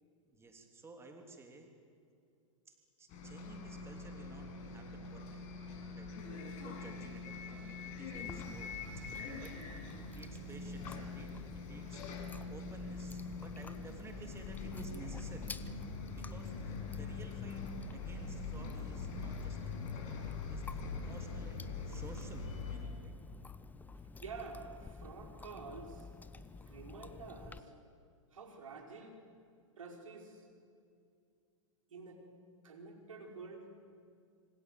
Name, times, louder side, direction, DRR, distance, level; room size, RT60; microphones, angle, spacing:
voice 1, 0.2-1.7 2.7-5.5 5.9-9.6 10.0-11.3 11.7-15.6 16.1-17.6 17.9-23.1, right 3 dB, 15° right, 4 dB, 3.1 m, -54 dB
Bus, 3.1-22.8, left 4 dB, 45° left, 6.9 m, -43 dB
Chewing mastication, 8.1-27.6, left 3 dB, 10° left, 0.9 m, -51 dB
voice 2, 24.2-26.1 26.6-27.7 28.3-29.1 29.8-30.5 31.9-32.2 32.6-33.7, right 4 dB, 75° right, 2 dB, 4.9 m, -49 dB
26.0 x 25.5 x 7.7 m, 2.4 s
hypercardioid pair, 105°, 17 cm